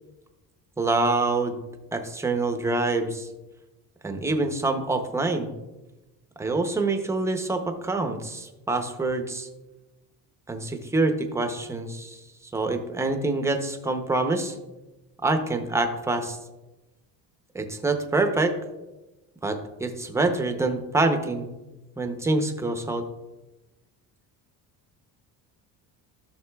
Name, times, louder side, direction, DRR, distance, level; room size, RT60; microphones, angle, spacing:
voice 1, 0.8-1.6 1.9-3.3 4.0-5.5 6.4-9.5 10.5-12.2 12.5-14.6 15.2-16.4 17.5-18.6 19.4-21.5 22.0-23.1, right 2 dB, 5° right, 5 dB, 0.6 m, -26 dB
12.5 x 6.4 x 2.2 m, 1.0 s
cardioid pair, 150°, 38 cm